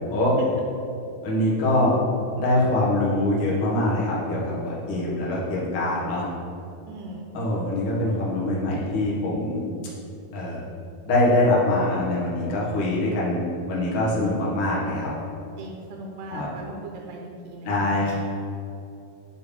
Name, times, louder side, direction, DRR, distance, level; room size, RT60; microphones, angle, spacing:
voice 1, 1.2-2.0 2.4-6.2 7.3-9.7 10.3-10.6 11.0-13.4 13.7-15.1 16.3-16.5 17.6-18.2, left 1 dB, 55° left, -6 dB, 1.6 m, -23 dB
voice 2, 6.9-7.3 15.6-18.1, right 2 dB, 85° right, 1 dB, 2.6 m, -39 dB
9.1 x 5.4 x 3.4 m, 2.6 s
omnidirectional pair, 4.8 m